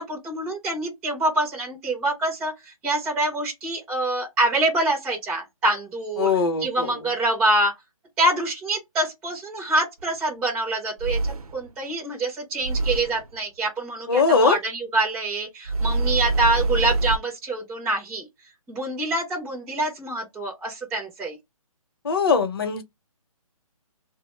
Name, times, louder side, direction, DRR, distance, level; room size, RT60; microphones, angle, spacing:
voice 1, 0.0-6.3 6.6-7.7 8.2-18.3 18.7-21.4, right 2 dB, 5° right, 0.4 m, -25 dB
voice 2, 6.2-6.9 14.1-14.6 22.0-22.8, left 4 dB, 40° left, 0.7 m, -21 dB
sound 1, 10.0-10.1 11.0-11.7 12.6-13.3 15.7-17.2, right 2 dB, 90° right, 0.6 m, -24 dB
2.7 x 2.0 x 3.1 m
hypercardioid pair, 165°, 19 cm